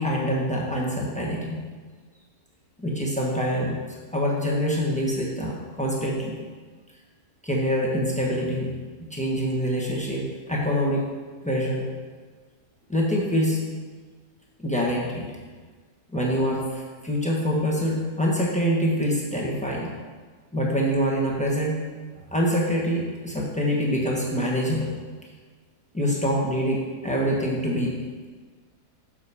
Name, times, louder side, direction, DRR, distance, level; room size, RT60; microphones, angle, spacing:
voice 1, 0.0-1.6 2.8-3.8 4.1-6.4 7.4-11.0 11.4-11.9 12.9-13.6 14.6-15.3 16.1-19.9 20.5-21.8 22.3-24.9 25.9-28.0, equal, 5° left, -3 dB, 1.1 m, -25 dB
7.6 x 6.4 x 5.0 m, 1.5 s
omnidirectional pair, 1.8 m